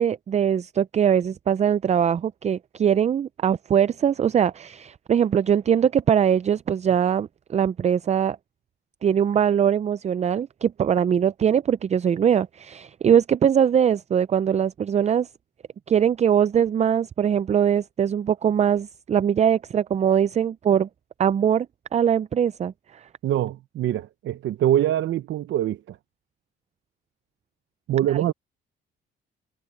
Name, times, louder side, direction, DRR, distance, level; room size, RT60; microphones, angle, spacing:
voice 1, 0.0-8.4 9.0-15.3 15.9-20.9 21.2-21.7 21.9-23.1 28.1-28.2, right 8 dB, 35° right, 0.4 m, -21 dB
voice 2, 23.2-26.0 27.9-28.3, right 12 dB, 70° right, 0.8 m, -24 dB
cardioid pair, 90°, 20 cm